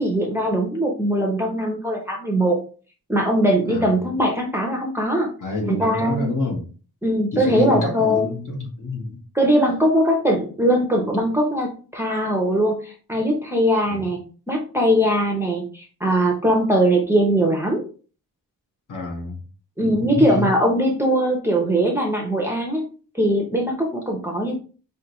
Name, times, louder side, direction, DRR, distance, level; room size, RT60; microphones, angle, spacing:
voice 1, 0.0-2.6 3.1-5.3 5.7-6.3 7.0-8.3 9.3-14.2 14.5-17.8 19.8-22.9 23.2-24.6, equal, 5° right, 0 dB, 0.7 m, -20 dB
voice 2, 3.7-4.1 5.4-6.6 7.3-9.2 13.9-14.0 18.9-19.4 19.8-20.5, left 2 dB, 50° left, 1 dB, 1.3 m, -27 dB
5.0 x 2.7 x 3.0 m, 0.38 s
wide cardioid pair, 160°, 39 cm